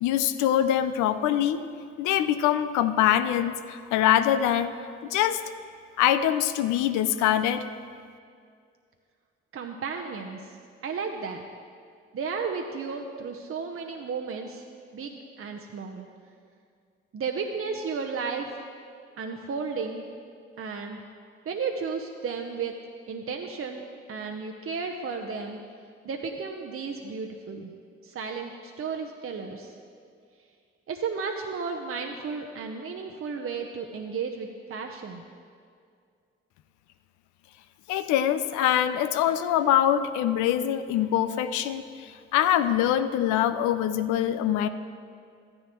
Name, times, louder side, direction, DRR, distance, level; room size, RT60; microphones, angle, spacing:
voice 1, 0.0-1.7 2.0-4.7 5.0-5.4 6.0-7.7 37.9-44.7, left 11 dB, 80° left, 11 dB, 0.5 m, -24 dB
voice 2, 9.5-10.5 10.8-11.4 12.1-14.6 14.9-16.1 17.1-18.6 19.2-20.1 20.6-21.0 21.5-22.7 23.1-23.8 24.1-25.6 26.0-27.7 28.0-29.7 30.9-35.3, right 5 dB, 50° right, 2 dB, 0.8 m, -33 dB
13.0 x 9.8 x 3.0 m, 2.2 s
hypercardioid pair, 45°, 29 cm